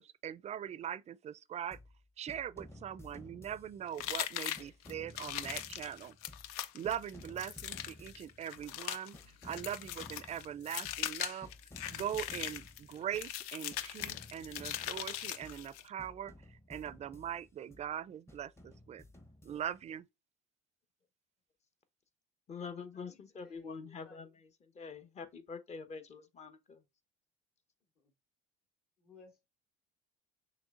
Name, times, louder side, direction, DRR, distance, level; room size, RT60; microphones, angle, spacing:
voice 1, 0.0-1.8 2.2-6.2 6.7-11.5 11.9-19.0 19.4-20.0, right 10 dB, 35° right, 0.4 m, -41 dB
sound 1, 1.7-2.0 2.3-4.2 4.6-6.6 6.8-8.8 9.1-11.1 11.4-13.4 13.7-15.7 16.0-17.9 18.3-19.9, left 1 dB, 15° left, 0.8 m, -55 dB
sound 2, 4.0-15.9, left 12 dB, 85° left, 0.5 m, -40 dB
voice 2, 22.5-26.9, left 5 dB, 35° left, 1.0 m, -46 dB
voice 3, 23.9-24.2 28.0-28.1 29.0-29.4, left 4 dB, 55° left, 2.6 m, -59 dB
6.1 x 3.2 x 2.5 m
supercardioid pair, 80°, 19 cm